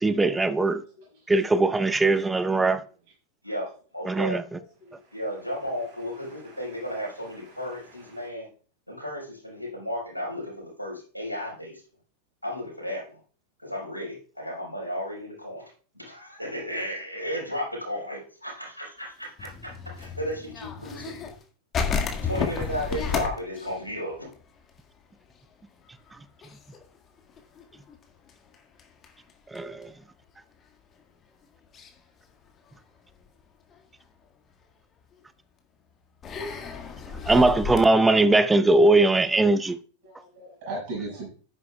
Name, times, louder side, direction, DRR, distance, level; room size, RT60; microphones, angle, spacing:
voice 1, 0.0-0.8 1.3-2.8 4.1-4.4 29.5-29.9 37.3-39.8, right 2 dB, 10° right, 0.6 m, -20 dB
voice 2, 1.0-1.3 1.6-1.7 4.5-8.3 40.0-41.3, right 2 dB, 50° right, 5.5 m, -42 dB
voice 3, 3.9-4.4 5.1-8.5 8.9-11.7 12.4-13.2 13.6-21.3 22.2-24.3, equal, 85° right, 4.6 m, -34 dB
sound 1, 19.2-21.4 21.7-25.0 25.2-25.4 25.8-26.1 26.4-29.8 30.6-30.7 31.7-32.0 32.5-33.2 33.7-33.8 35.1-35.2 36.2-37.8, left 5 dB, 25° left, 1.8 m, -32 dB
11.0 x 9.5 x 2.3 m
figure-of-eight pair, 90°, 0 cm